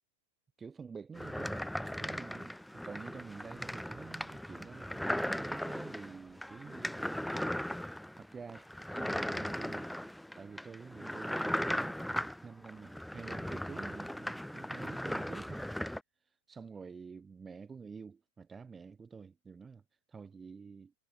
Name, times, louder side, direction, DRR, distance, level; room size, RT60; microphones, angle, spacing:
voice 1, 0.6-1.6 2.0-7.5 8.2-10.0 10.4-15.7 16.2-20.9, right 5 dB, 15° right, 3.3 m, -49 dB
sound 1, 1.1-16.0, equal, ahead, 2.8 m, -38 dB
hypercardioid pair, 110°, 0 cm